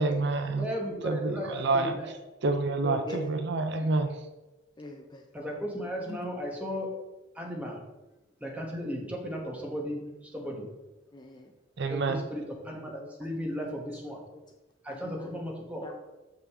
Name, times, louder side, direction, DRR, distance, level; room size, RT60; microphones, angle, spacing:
voice 1, 0.0-0.7 1.0-1.9 2.4-4.3 11.8-12.2, right 3 dB, 55° right, 7 dB, 0.5 m, -28 dB
voice 2, 0.6-2.1 5.3-6.9 7.3-7.8 8.4-10.7 11.9-14.2 14.8-15.9, equal, 5° right, -1 dB, 1.1 m, -35 dB
voice 3, 2.8-3.3 4.8-5.2 6.1-6.2 11.1-11.5 13.0-13.1 13.6-13.7 14.3-14.4 14.9-15.4 15.8-16.1, left 1 dB, 20° left, 4 dB, 0.4 m, -41 dB
6.3 x 5.6 x 3.5 m, 1.1 s
head